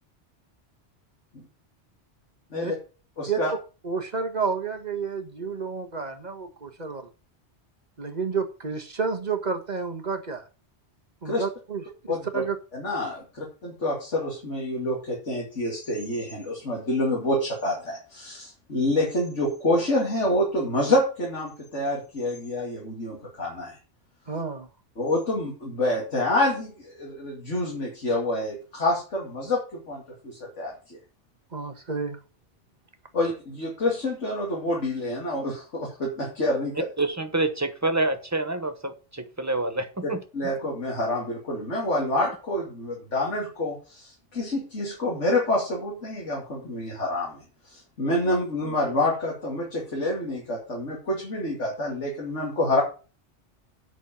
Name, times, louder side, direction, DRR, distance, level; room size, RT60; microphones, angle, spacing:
voice 1, 3.2-3.5 11.2-11.4 12.1-12.4 12.7-23.8 25.0-31.0 33.1-36.9 40.0-52.8, left 1 dB, 80° left, -2 dB, 2.8 m, -27 dB
voice 2, 3.8-7.0 8.0-10.4 11.2-12.5 24.3-24.7 31.5-32.2, right 5 dB, 40° right, 6 dB, 1.4 m, -30 dB
voice 3, 37.0-40.2, right 2 dB, 15° right, 8 dB, 1.0 m, -27 dB
8.2 x 6.1 x 7.2 m, 0.35 s
omnidirectional pair, 1.2 m